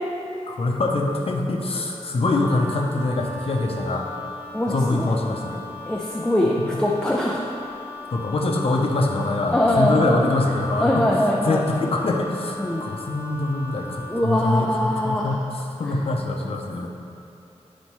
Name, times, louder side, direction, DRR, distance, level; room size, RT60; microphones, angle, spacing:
voice 1, 0.5-4.1 4.7-5.7 6.6-6.8 8.1-16.9, left 2 dB, 55° left, 0 dB, 0.8 m, -24 dB
Wind instrument woodwind instrument, 2.2-14.3, left 3 dB, 20° right, 1.5 m, -38 dB
voice 2, 4.5-5.2 5.9-7.4 9.5-10.3 10.8-11.6 12.6-12.8 14.1-15.4, left 1 dB, 5° left, -3 dB, 0.5 m, -22 dB
10.5 x 4.2 x 3.2 m, 2.8 s
wide cardioid pair, 140°, 12 cm